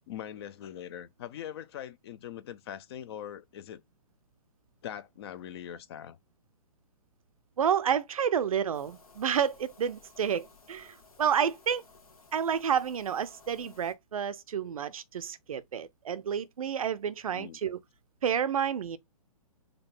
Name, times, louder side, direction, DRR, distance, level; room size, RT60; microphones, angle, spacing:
voice 1, 0.1-3.8 4.8-6.2 17.3-17.6, left 10 dB, 45° left, 0.5 m, -42 dB
voice 2, 7.6-11.8 12.3-17.8 18.2-19.0, right 8 dB, 70° right, 0.5 m, -30 dB
sound 1, 8.7-13.9, left 3 dB, 75° left, 1.2 m, -57 dB
5.1 x 2.3 x 3.6 m
figure-of-eight pair, 120°, 19 cm